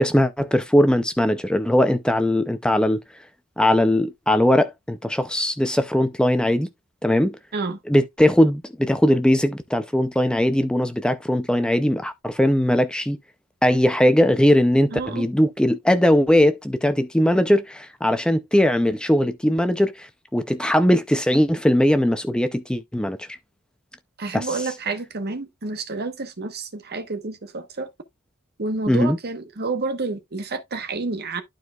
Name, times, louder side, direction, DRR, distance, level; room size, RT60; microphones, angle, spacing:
voice 1, 0.0-3.0 3.6-6.7 7.0-7.4 7.9-13.2 13.6-23.3 24.3-24.7 28.9-29.2, left 1 dB, 5° left, 0.4 m, -20 dB
voice 2, 14.9-15.3 24.2-27.9 28.6-31.4, right 3 dB, 50° right, 1.1 m, -29 dB
11.5 x 4.6 x 2.3 m
head